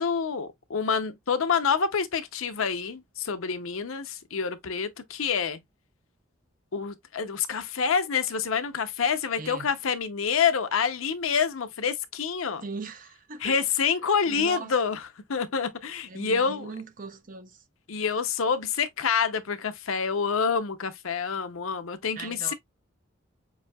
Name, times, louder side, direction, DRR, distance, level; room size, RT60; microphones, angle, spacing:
voice 1, 0.0-5.6 6.7-12.6 13.4-15.0 15.3-16.7 17.9-22.5, left 6 dB, 85° left, 0.7 m, -27 dB
voice 2, 9.4-9.7 12.6-13.6 14.3-14.7 16.1-17.6 22.2-22.5, right 4 dB, 40° right, 0.7 m, -39 dB
7.1 x 2.7 x 2.3 m
head